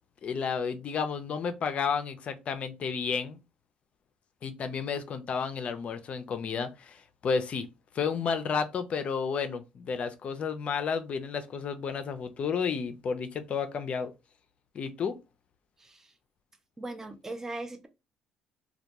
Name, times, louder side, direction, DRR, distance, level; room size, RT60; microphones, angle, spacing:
voice 1, 0.2-3.4 4.4-7.7 7.9-14.1 14.7-15.2, left 6 dB, 45° left, 0.4 m, -31 dB
voice 2, 15.8-16.1 16.8-17.9, right 2 dB, 15° right, 0.4 m, -39 dB
2.2 x 2.2 x 2.8 m
cardioid pair, 95°, 3 cm